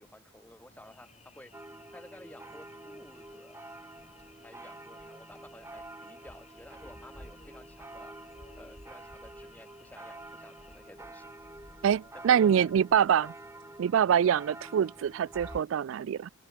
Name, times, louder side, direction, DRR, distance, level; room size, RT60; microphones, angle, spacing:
voice 1, 0.0-1.5 1.9-3.6 4.4-8.1 8.6-11.3 12.1-13.1, left 1 dB, 10° left, 4.1 m, -53 dB
sound 1, 0.7-15.6, left 1 dB, 30° left, 4.0 m, -56 dB
sound 2, 1.5-15.6, right 2 dB, 15° right, 2.4 m, -48 dB
voice 2, 11.8-13.3 13.8-16.3, right 8 dB, 65° right, 0.3 m, -25 dB
head